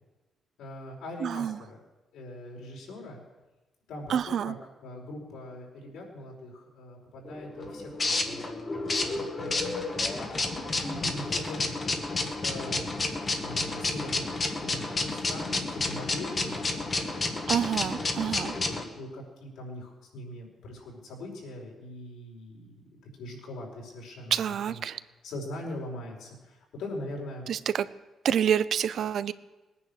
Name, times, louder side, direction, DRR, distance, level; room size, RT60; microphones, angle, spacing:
voice 1, 0.6-1.8 2.1-3.2 3.9-4.5 4.8-10.4 10.8-12.8 13.4-16.7 17.1-24.4 24.7-27.5, left 1 dB, 80° left, -1 dB, 5.0 m, -42 dB
voice 2, 1.2-1.6 4.1-4.5 17.5-18.5 24.3-25.0 27.5-27.9 28.2-29.3, right 8 dB, 50° right, 15 dB, 0.5 m, -27 dB
sound 1, 7.3-18.8, left 3 dB, 25° left, 1.4 m, -31 dB
20.5 x 9.9 x 6.6 m, 1.1 s
cardioid pair, 170°, 0 cm